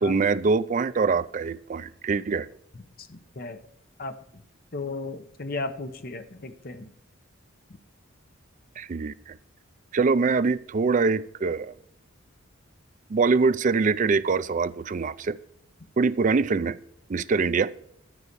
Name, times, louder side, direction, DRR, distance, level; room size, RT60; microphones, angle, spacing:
voice 1, 0.0-2.5 8.8-9.4 9.9-11.8 13.1-15.4 16.0-16.8 17.1-17.7, right 4 dB, 40° right, 0.4 m, -24 dB
voice 2, 2.7-3.6 4.0-4.4 4.7-6.9, left 3 dB, 45° left, 0.9 m, -36 dB
12.0 x 4.9 x 6.7 m
head